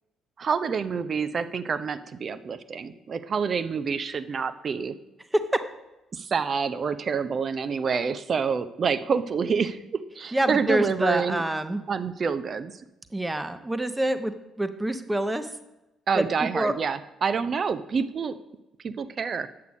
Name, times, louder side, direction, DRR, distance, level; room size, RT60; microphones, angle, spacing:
voice 1, 0.4-4.9 6.1-11.4 11.9-12.7 16.1-18.4 18.8-19.5, right 6 dB, 40° right, 13 dB, 0.7 m, -27 dB
voice 2, 10.3-11.8 13.1-14.3 14.6-15.5 16.1-16.7, right 1 dB, 10° right, 10 dB, 1.0 m, -26 dB
9.6 x 8.2 x 5.2 m, 0.97 s
figure-of-eight pair, 45°, 0 cm